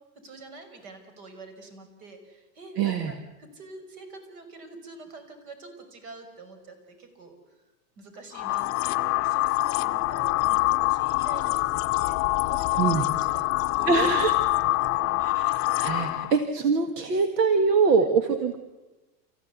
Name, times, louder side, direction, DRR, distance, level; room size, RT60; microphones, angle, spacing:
voice 1, 0.2-7.6 8.0-14.2 14.5-15.3 17.8-18.1, right 3 dB, 65° right, 8 dB, 6.0 m, -46 dB
voice 2, 2.8-3.1 12.8-13.0 13.9-14.3 15.2-15.5 15.8-18.6, right 5 dB, 85° right, 8 dB, 2.0 m, -23 dB
sound 1, 8.3-16.4, left 19 dB, 30° left, 0.7 m, -25 dB
29.5 x 15.0 x 8.3 m, 1.1 s
hypercardioid pair, 135°, 47 cm